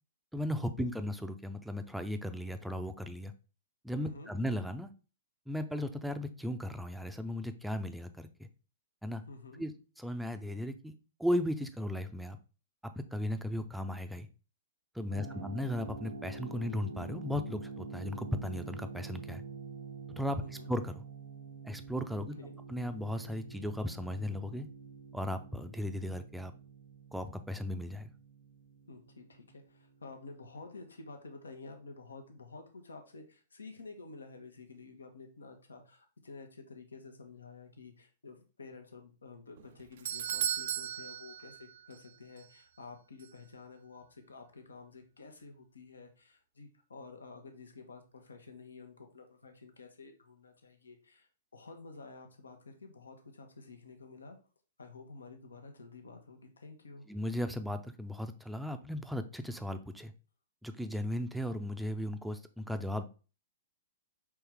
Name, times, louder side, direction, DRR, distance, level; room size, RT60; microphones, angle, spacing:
voice 1, 0.3-3.3 3.8-4.9 5.5-8.5 9.0-9.2 9.6-9.7 10.0-10.9 11.2-12.4 12.8-14.3 14.9-19.4 20.2-20.4 20.7-21.0 21.6-22.3 22.7-24.7 25.1-26.5 27.1-28.1 57.1-60.1 60.6-63.0, left 1 dB, ahead, 8 dB, 0.5 m, -36 dB
voice 2, 4.0-4.3 9.2-9.7 15.1-15.5 20.4-20.7 22.4-22.6 28.9-54.4 54.8-57.1, left 3 dB, 80° left, 5 dB, 0.9 m, -51 dB
sound 1, 15.1-29.9, right 5 dB, 90° right, 1.2 m, -47 dB
Doorbell, 39.6-42.1 42.4-42.5 43.2-43.3, right 10 dB, 60° right, 0.3 m, -36 dB
4.5 x 3.2 x 3.5 m, 0.35 s
hypercardioid pair, 115°, 0 cm